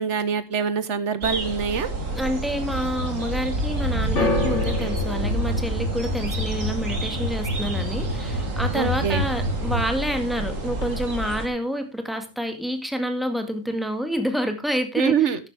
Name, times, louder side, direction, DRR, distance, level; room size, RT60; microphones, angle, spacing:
voice 1, 0.0-1.9 8.7-9.3 15.0-15.5, right 7 dB, 65° right, 13 dB, 1.4 m, -24 dB
sound 1, 1.2-11.5, right 2 dB, 85° right, 2.6 m, -29 dB
sound 2, 1.8-9.9, equal, 35° left, 7.2 m, -30 dB
voice 2, 2.1-15.5, equal, ahead, 5 dB, 1.8 m, -28 dB
sound 3, 4.2-10.4 10.7-11.4 12.1-12.2, left 3 dB, 65° left, 2.7 m, -33 dB
12.5 x 9.9 x 3.5 m, 0.25 s
omnidirectional pair, 1.3 m